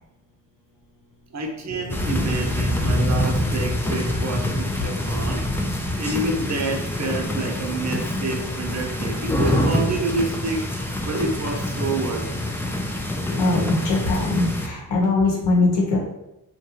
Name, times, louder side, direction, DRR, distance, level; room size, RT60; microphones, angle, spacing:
voice 1, 1.3-5.4 5.7-12.4, right 2 dB, 40° right, 1 dB, 0.7 m, -28 dB
sound 1, 1.9-14.7, left 1 dB, 5° left, 0.3 m, -25 dB
voice 2, 13.4-16.0, left 3 dB, 70° left, -2 dB, 1.1 m, -21 dB
2.6 x 2.3 x 2.9 m, 0.89 s
supercardioid pair, 50°, 44 cm